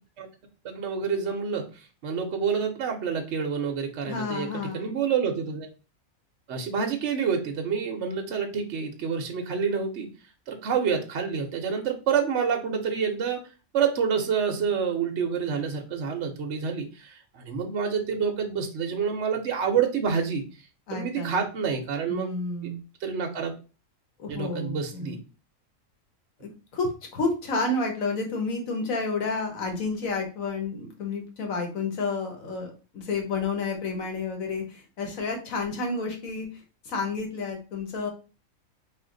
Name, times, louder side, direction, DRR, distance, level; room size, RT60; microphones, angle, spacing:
voice 1, 0.6-4.5 4.7-5.7 6.5-10.1 10.5-13.4 13.7-20.4 20.9-22.3 22.6-22.7 23.0-23.5 24.3-25.2, right 6 dB, 60° right, 4 dB, 0.9 m, -28 dB
voice 2, 4.0-4.9 20.9-21.4 22.1-22.8 24.2-25.2 26.4-36.5 36.8-38.1, left 3 dB, 75° left, 3 dB, 1.5 m, -30 dB
4.2 x 2.5 x 3.8 m, 0.34 s
omnidirectional pair, 1.4 m